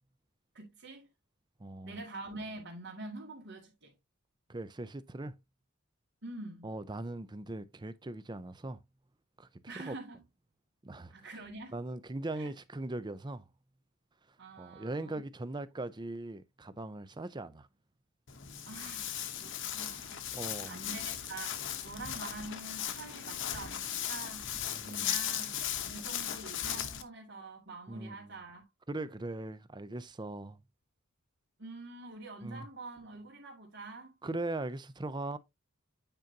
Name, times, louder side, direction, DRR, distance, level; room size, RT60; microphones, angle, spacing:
voice 1, 0.5-1.1 1.8-3.9 6.2-6.7 9.7-10.2 11.1-11.7 12.3-12.5 14.4-15.2 18.6-20.3 20.6-25.6 25.9-28.7 31.6-34.1, right 2 dB, 55° right, 2.0 m, -46 dB
voice 2, 1.6-2.0 4.5-5.4 6.6-8.8 9.4-9.9 10.8-11.3 11.7-13.5 14.3-17.7 20.3-20.8 24.6-25.2 27.9-28.3 28.9-30.6 32.4-32.7 34.2-35.4, right 2 dB, 20° right, 0.5 m, -40 dB
Walk footsteps, 18.3-27.0, left 10 dB, 60° left, 1.0 m, -37 dB
9.0 x 5.2 x 2.8 m
head